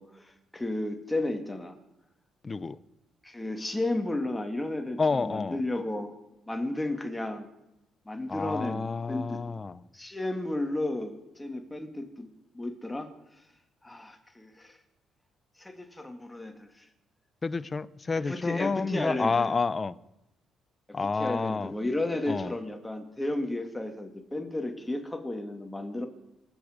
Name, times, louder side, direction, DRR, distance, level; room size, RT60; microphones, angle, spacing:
voice 1, 0.0-1.8 3.2-6.2 6.5-7.5 8.1-9.4 9.9-12.3 12.5-13.1 13.8-14.8 15.6-16.9 18.2-19.5 20.9-26.1, left 1 dB, 10° left, 2.0 m, -33 dB
voice 2, 2.4-2.8 5.0-5.6 8.3-9.8 17.4-19.9 20.9-21.7 22.3-22.5, left 4 dB, 30° left, 0.6 m, -29 dB
25.5 x 8.7 x 5.1 m
cardioid pair, 90°, 0 cm